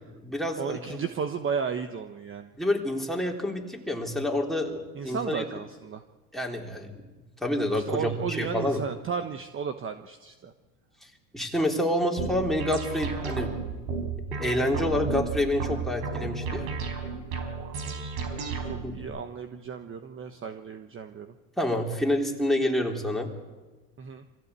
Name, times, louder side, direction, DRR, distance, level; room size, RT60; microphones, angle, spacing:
voice 1, 0.1-1.0 2.6-5.4 6.3-7.0 7.4-8.8 11.3-13.8 14.3-16.6 18.8-19.1 21.6-23.3, left 1 dB, ahead, -1 dB, 3.7 m, -28 dB
voice 2, 0.6-2.5 4.9-6.0 7.9-10.5 18.6-21.3 24.0-24.2, right 6 dB, 30° right, 8 dB, 1.2 m, -34 dB
sound 1, 12.2-19.0, right 4 dB, 75° right, 4.6 m, -33 dB
24.5 x 15.5 x 8.3 m, 1.3 s
supercardioid pair, 105°, 43 cm